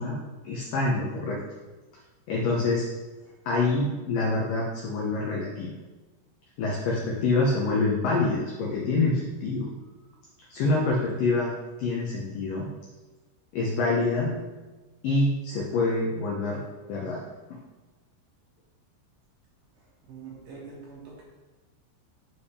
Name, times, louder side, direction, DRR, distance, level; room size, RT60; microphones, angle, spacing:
voice 1, 0.0-1.4 2.3-2.8 3.5-5.7 6.6-9.7 10.5-11.5 11.8-12.7 13.5-14.4 15.0-16.6 16.9-17.2, left 3 dB, 90° left, -3 dB, 1.9 m, -26 dB
voice 2, 19.7-21.2, right 5 dB, 70° right, -4 dB, 2.2 m, -45 dB
8.9 x 4.2 x 3.4 m, 1.2 s
omnidirectional pair, 5.2 m